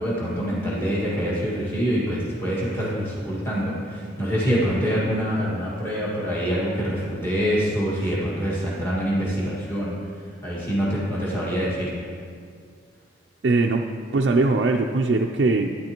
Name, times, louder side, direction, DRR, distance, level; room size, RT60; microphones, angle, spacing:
voice 1, 0.0-10.0 10.4-11.9, equal, 10° left, -7 dB, 1.7 m, -25 dB
voice 2, 13.4-13.9 14.1-15.7, right 3 dB, 60° right, 1 dB, 0.4 m, -20 dB
12.0 x 9.7 x 2.9 m, 2.2 s
head